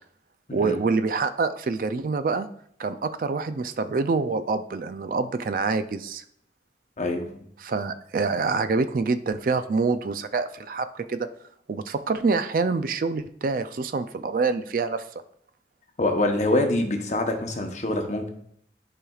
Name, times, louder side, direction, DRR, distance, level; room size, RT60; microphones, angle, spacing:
voice 1, 0.5-2.5 2.8-6.2 7.6-11.3 11.7-15.0, right 4 dB, 50° right, 11 dB, 0.3 m, -26 dB
voice 2, 7.0-7.5 16.0-18.3, left 1 dB, 40° left, 4 dB, 0.9 m, -25 dB
10.5 x 4.8 x 2.4 m, 0.68 s
head